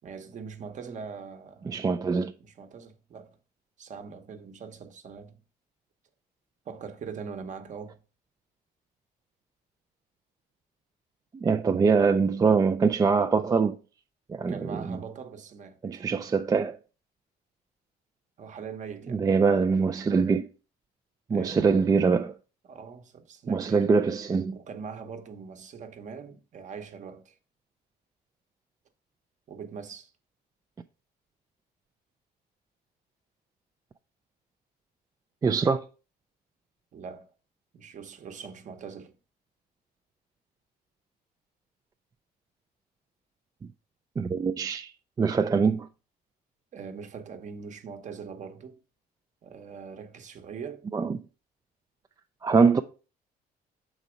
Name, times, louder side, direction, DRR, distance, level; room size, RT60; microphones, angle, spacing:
voice 1, 0.0-1.7 2.4-3.4 3.8-5.4 6.6-8.0 14.5-16.0 18.4-19.3 21.3-21.6 22.6-24.0 24.5-27.4 29.5-30.1 36.9-37.3 37.7-39.2 46.7-48.8 49.4-50.9, right 6 dB, 45° right, 1.0 m, -42 dB
voice 2, 1.7-2.3 11.3-13.8 14.3-15.0 15.8-16.8 19.1-20.5 21.3-22.3 23.5-24.6 35.4-35.8 44.2-44.9 45.2-45.9 50.9-51.2 52.4-52.8, right 5 dB, 20° right, 0.3 m, -23 dB
6.0 x 4.1 x 5.0 m
cardioid pair, 110°, 17 cm